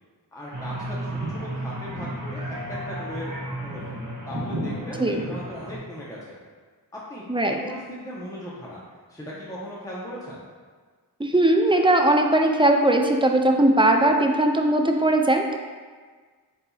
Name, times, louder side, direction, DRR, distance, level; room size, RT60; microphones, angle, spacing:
voice 1, 0.3-3.3 3.6-6.4 6.9-8.8 9.1-10.4, equal, 10° left, -6 dB, 0.8 m, -38 dB
sound 1, 0.5-5.8, right 1 dB, 45° right, 1.0 m, -33 dB
voice 2, 11.2-15.6, right 1 dB, 15° right, 3 dB, 0.4 m, -19 dB
8.0 x 2.7 x 2.3 m, 1.5 s
wide cardioid pair, 40°, 41 cm